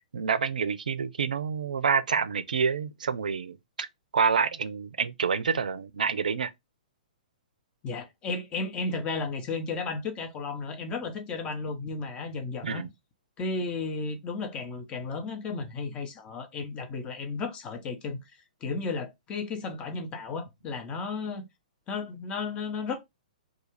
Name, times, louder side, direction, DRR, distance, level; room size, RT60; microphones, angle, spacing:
voice 1, 0.0-3.9 4.1-6.5 12.6-12.9, right 6 dB, 75° right, 0.3 m, -28 dB
voice 2, 7.8-12.9 13.4-21.5 21.9-23.0, left 4 dB, 25° left, 0.7 m, -34 dB
2.4 x 2.3 x 3.1 m
hypercardioid pair, 120°, 4 cm